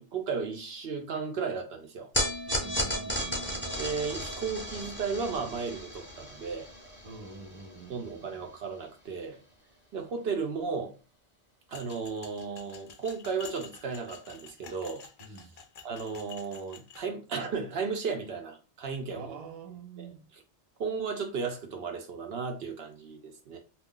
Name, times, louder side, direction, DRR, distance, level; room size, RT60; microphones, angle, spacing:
voice 1, 0.0-2.1 3.8-6.7 7.9-9.4 9.9-10.9 11.7-15.0 15.8-19.4 20.0-20.4 20.8-23.6, right 5 dB, 70° right, 0.8 m, -34 dB
sound 1, 2.1-8.5, equal, 10° left, 0.8 m, -35 dB
voice 2, 2.5-3.7 7.0-8.2 15.2-15.5 19.1-20.2, right 4 dB, 40° right, 0.6 m, -46 dB
sound 2, 11.7-17.0, left 6 dB, 55° left, 0.4 m, -49 dB
2.4 x 2.3 x 3.6 m
omnidirectional pair, 1.1 m